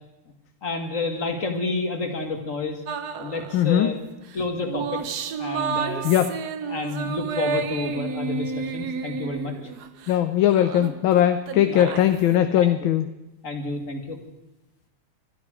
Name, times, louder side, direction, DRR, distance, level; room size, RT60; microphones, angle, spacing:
voice 1, 0.6-2.8 3.2-4.0 4.3-5.0 5.4-6.1 6.7-9.5 11.7-11.9 12.5-12.7 13.4-14.2, left 3 dB, 40° left, 4 dB, 1.9 m, -29 dB
sound 1, 2.9-3.7 4.3-10.2 10.5-12.4, right 5 dB, 60° right, 1.2 m, -31 dB
voice 2, 3.5-4.0 6.0-6.4 10.1-13.1, left 11 dB, 75° left, 9 dB, 1.4 m, -20 dB
22.0 x 13.0 x 4.9 m, 0.97 s
omnidirectional pair, 2.3 m